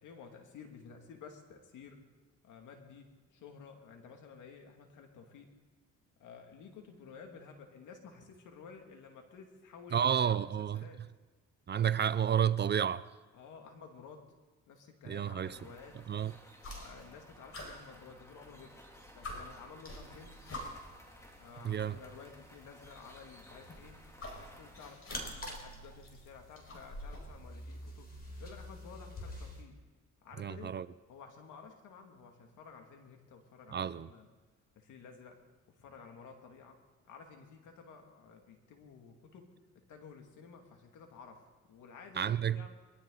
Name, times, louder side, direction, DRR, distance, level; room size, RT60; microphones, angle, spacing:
voice 1, 0.0-2.0 2.4-3.1 3.3-5.5 6.2-11.0 13.3-14.2 14.7-16.0 16.7-18.8 19.2-20.4 21.4-24.0 24.3-28.1 28.4-29.8 30.2-30.8 31.1-34.3 34.8-35.4 35.8-36.8 37.1-39.5 39.7-42.7, left 5 dB, 80° left, 2.5 m, -53 dB
voice 2, 9.9-10.8 11.7-13.0 15.1-15.6 16.1-16.3 21.6-22.0 30.4-30.9 33.7-34.1 42.2-42.7, right 8 dB, 35° right, 0.5 m, -31 dB
sound 1, 15.4-25.0, equal, 10° left, 2.7 m, -57 dB
sound 2, 16.6-17.2 17.5-18.6 18.9-19.0 19.2-21.0 22.0-22.1 23.5-25.6 25.9-27.3, left 1 dB, 50° left, 5.5 m, -46 dB
sound 3, 19.9-29.6, left 1 dB, 30° left, 3.9 m, -49 dB
23.0 x 13.5 x 4.0 m
cardioid pair, 90°, 30 cm